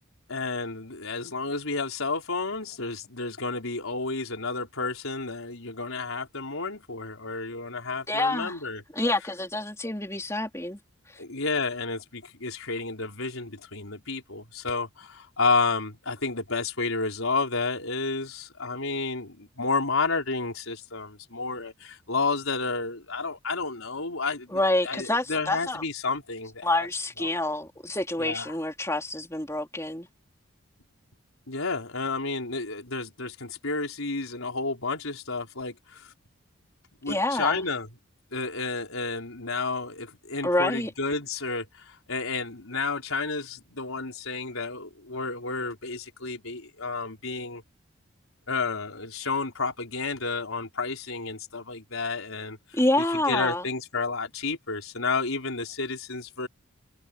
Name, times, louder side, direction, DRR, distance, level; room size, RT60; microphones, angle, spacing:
voice 1, 0.3-8.8 11.2-26.9 27.2-27.3 28.2-28.6 31.5-36.1 37.0-37.9 38.3-47.6 48.5-52.8 53.1-56.5, left 3 dB, 85° left, 4.7 m, -31 dB
voice 2, 8.1-8.6 8.9-10.8 24.5-25.8 26.6-30.1 37.1-37.6 40.4-40.9 52.7-53.6, left 1 dB, 15° left, 4.0 m, -27 dB
head